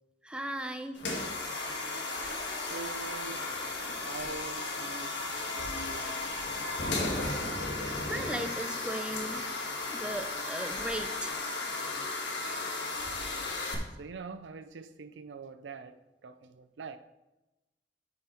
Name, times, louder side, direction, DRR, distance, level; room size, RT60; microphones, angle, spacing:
voice 1, 0.2-1.0 8.1-9.4 9.9-11.5 12.5-12.6, right 1 dB, 5° right, 7 dB, 0.6 m, -37 dB
sound 1, 1.0-13.7, left 2 dB, 75° left, 1.6 m, -35 dB
voice 2, 2.6-6.2 8.2-8.3 12.6-13.2 14.0-17.0, right 5 dB, 75° right, 11 dB, 0.5 m, -45 dB
9.4 x 5.7 x 4.4 m, 1.0 s
head